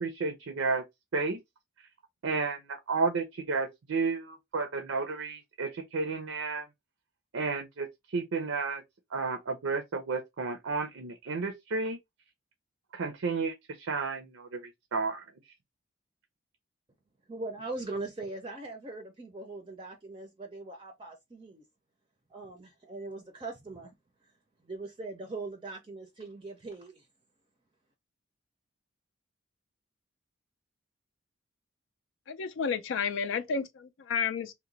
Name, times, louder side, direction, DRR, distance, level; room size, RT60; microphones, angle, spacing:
voice 1, 0.0-0.8 1.1-1.4 2.2-6.7 7.3-8.8 9.1-12.0 12.9-15.2, right 4 dB, 80° right, 0.5 m, -32 dB
voice 2, 17.3-21.6 22.3-23.9 24.6-27.0, right 2 dB, 25° right, 0.5 m, -40 dB
voice 3, 32.3-34.5, left 6 dB, 75° left, 0.4 m, -31 dB
2.9 x 2.1 x 3.8 m
head